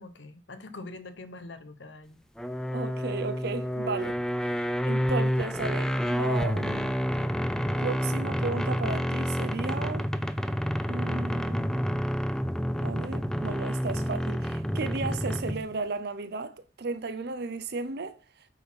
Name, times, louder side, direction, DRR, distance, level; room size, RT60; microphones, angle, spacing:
voice 1, 0.0-2.2, left 2 dB, 80° left, 1.0 m, -44 dB
sound 1, 2.4-15.7, equal, 5° left, 0.4 m, -29 dB
voice 2, 2.7-4.2 4.5-6.9 7.8-10.1 10.9-11.8 12.8-18.2, right 3 dB, 60° right, 0.6 m, -34 dB
9.0 x 4.2 x 5.6 m
head